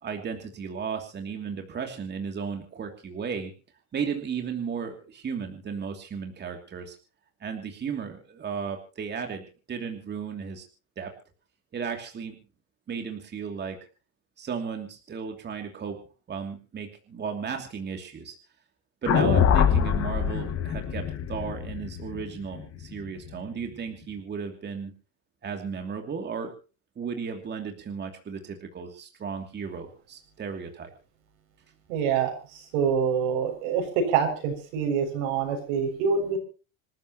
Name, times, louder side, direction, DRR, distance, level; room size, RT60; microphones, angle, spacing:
voice 1, 0.0-3.5 3.9-6.9 7.4-9.4 9.7-10.6 11.0-11.1 11.7-12.3 12.9-13.8 14.4-16.0 16.3-18.4 19.0-24.9 25.4-26.5 27.0-30.9, right 6 dB, 25° right, 4 dB, 2.8 m, -34 dB
sound 1, 19.1-23.3, left 8 dB, 40° left, 2.6 m, -24 dB
voice 2, 31.9-32.3 32.7-36.4, right 6 dB, 80° right, 5 dB, 7.1 m, -25 dB
27.0 x 14.0 x 3.0 m, 0.34 s
cardioid pair, 135°, 38 cm